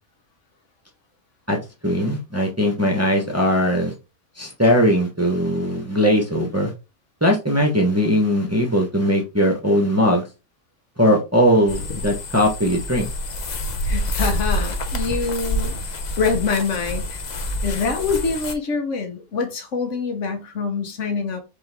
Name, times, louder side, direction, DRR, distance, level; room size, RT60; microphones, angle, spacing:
voice 1, 1.8-3.9 4.4-6.7 7.2-10.2 11.0-13.1, equal, 15° right, 0.9 m, -19 dB
sound 1, 11.7-18.5, left 1 dB, 45° left, 0.6 m, -27 dB
voice 2, 13.8-15.8 16.2-21.4, left 4 dB, 70° left, 1.3 m, -25 dB
4.3 x 3.6 x 3.4 m
omnidirectional pair, 1.3 m